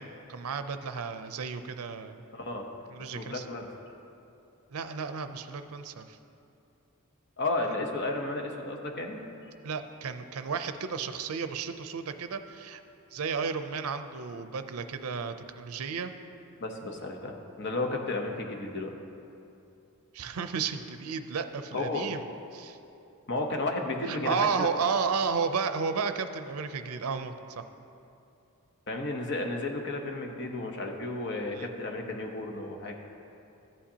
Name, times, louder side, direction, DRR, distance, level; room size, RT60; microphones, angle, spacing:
voice 1, 0.0-2.2 2.9-3.5 4.7-6.2 9.6-12.8 13.1-16.1 20.1-22.3 22.5-22.8 24.1-27.6 31.5-31.7, right 5 dB, 75° right, 9 dB, 0.5 m, -33 dB
voice 2, 2.3-2.7 3.1-3.7 7.4-9.2 16.6-18.9 21.7-22.1 23.3-24.7 28.9-33.0, left 2 dB, 50° left, 2 dB, 0.9 m, -33 dB
14.0 x 8.6 x 2.8 m, 2.7 s
head